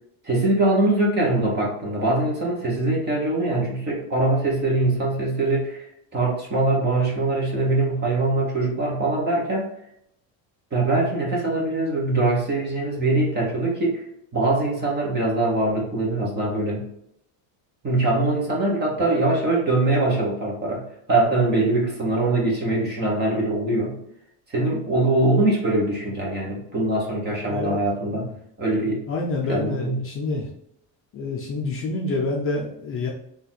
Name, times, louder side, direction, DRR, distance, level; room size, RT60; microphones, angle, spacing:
voice 1, 0.2-5.9 6.1-9.7 10.7-14.0 14.3-16.8 17.8-24.0 24.5-28.3 28.6-29.0 29.5-30.0, right 2 dB, 25° right, -3 dB, 1.4 m, -22 dB
voice 2, 29.1-30.5 31.1-33.1, left 3 dB, 30° left, -1 dB, 0.6 m, -27 dB
4.2 x 2.9 x 4.0 m, 0.74 s
cardioid pair, 175°, 42 cm